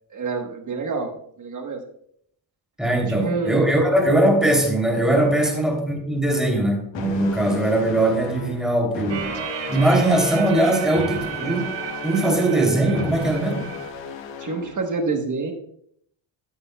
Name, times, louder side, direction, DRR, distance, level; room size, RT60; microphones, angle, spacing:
voice 1, 0.1-1.8 3.1-3.6 5.4-5.5 14.4-15.5, right 4 dB, 40° right, 4 dB, 1.2 m, -27 dB
voice 2, 2.8-9.3 9.7-11.7 12.0-13.7, right 1 dB, ahead, 0 dB, 2.8 m, -20 dB
sound 1, 6.9-14.9, left 4 dB, 70° left, 1.2 m, -35 dB
sound 2, 9.1-13.9, right 9 dB, 65° right, 1.4 m, -33 dB
14.5 x 7.8 x 2.2 m, 0.67 s
cardioid pair, 140°, 47 cm